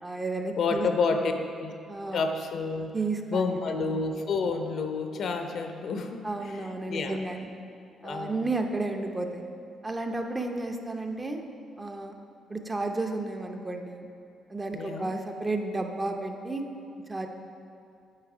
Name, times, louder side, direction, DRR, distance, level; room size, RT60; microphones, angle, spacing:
voice 1, 0.0-0.9 1.9-2.2 2.9-3.8 6.2-7.5 8.0-9.4 9.8-11.4 11.8-12.1 12.5-14.1 14.5-16.6 17.1-17.3, right 2 dB, 20° right, 4 dB, 0.6 m, -32 dB
voice 2, 0.6-1.7 2.1-2.9 3.3-7.2 8.0-8.5 14.7-15.1, left 4 dB, 65° left, 6 dB, 0.6 m, -29 dB
8.8 x 4.2 x 4.8 m, 2.5 s
cardioid pair, 90°, 0 cm